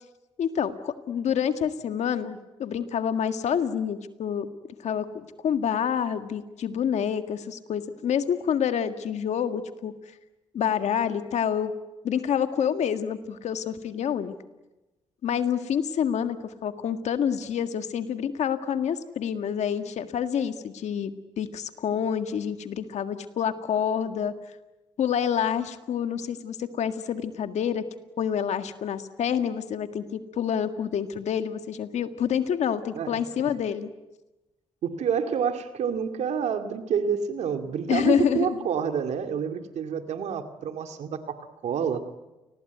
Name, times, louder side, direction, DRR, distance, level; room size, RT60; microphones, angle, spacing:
voice 1, 0.4-4.5 4.8-9.9 10.5-11.7 12.0-14.3 15.2-21.1 21.4-24.3 25.0-27.9 28.2-33.9 37.9-38.6, left 8 dB, 85° left, 9 dB, 1.8 m, -27 dB
voice 2, 32.9-33.5 34.8-42.1, right 7 dB, 90° right, 8 dB, 2.3 m, -28 dB
29.5 x 20.5 x 9.3 m, 1.1 s
cardioid pair, 80°, 11 cm